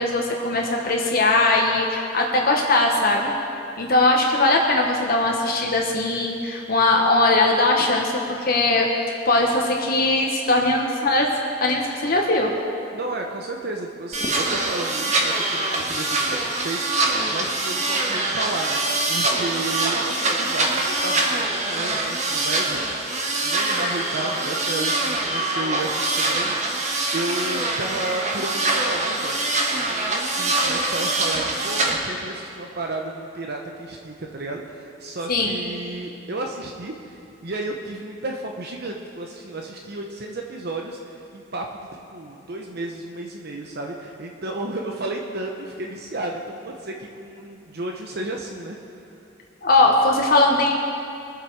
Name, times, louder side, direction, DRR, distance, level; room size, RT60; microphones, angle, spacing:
voice 1, 0.0-3.3 3.8-8.9 9.2-11.3 11.6-12.5 35.3-35.6 49.6-50.7, left 2 dB, 50° left, 0 dB, 1.1 m, -20 dB
voice 2, 12.9-23.1 23.4-29.4 29.9-48.8, right 2 dB, 55° right, 1 dB, 0.9 m, -33 dB
sound 1, 14.1-31.9, right 2 dB, 35° right, 1.4 m, -24 dB
22.5 x 7.9 x 4.8 m, 2.6 s
head